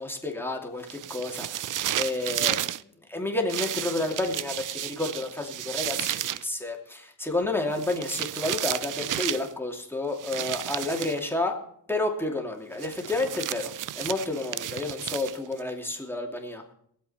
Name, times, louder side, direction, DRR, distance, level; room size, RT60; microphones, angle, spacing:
voice 1, 0.0-11.5 11.9-16.6, left 2 dB, 5° left, 1 dB, 2.6 m, -30 dB
sound 1, 0.9-2.8 3.5-6.5 7.7-9.5 10.2-11.2 12.8-15.6, right 12 dB, 50° right, 0.5 m, -32 dB
22.0 x 8.1 x 4.3 m, 0.69 s
cardioid pair, 100°, 41 cm